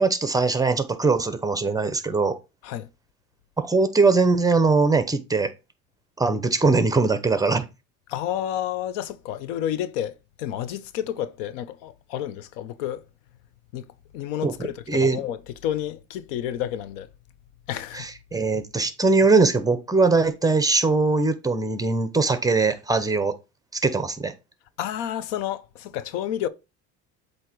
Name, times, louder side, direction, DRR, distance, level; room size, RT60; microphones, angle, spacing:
voice 1, 0.0-2.4 3.6-5.5 6.2-7.6 14.4-14.5 14.9-15.2 17.9-23.3 23.8-24.3, right 3 dB, 10° right, 0.8 m, -21 dB
voice 2, 8.1-13.0 13.7-13.8 14.1-17.1 17.7-18.1 24.8-26.5, left 11 dB, 85° left, 0.7 m, -30 dB
7.7 x 2.9 x 4.5 m
cardioid pair, 110°, 36 cm